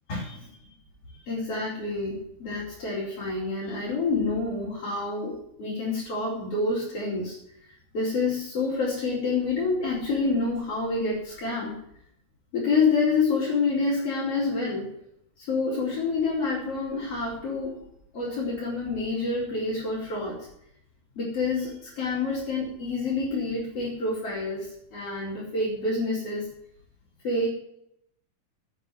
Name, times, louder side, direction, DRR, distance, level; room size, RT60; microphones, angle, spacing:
voice 1, 0.1-0.5 1.2-7.4 7.9-11.7 12.5-14.9 15.4-17.8 18.1-20.5 21.2-26.5 27.2-27.5, left 3 dB, 40° left, -7 dB, 5.4 m, -28 dB
10.5 x 9.6 x 9.2 m, 0.74 s
omnidirectional pair, 4.1 m